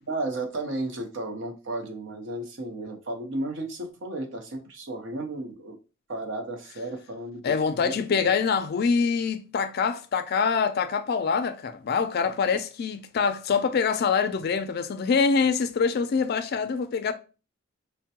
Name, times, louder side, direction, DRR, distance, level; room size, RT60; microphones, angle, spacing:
voice 1, 0.0-5.8 6.1-8.3, right 2 dB, 60° right, 0.7 m, -34 dB
voice 2, 7.4-17.1, left 5 dB, 50° left, 0.3 m, -25 dB
4.3 x 2.1 x 2.8 m
head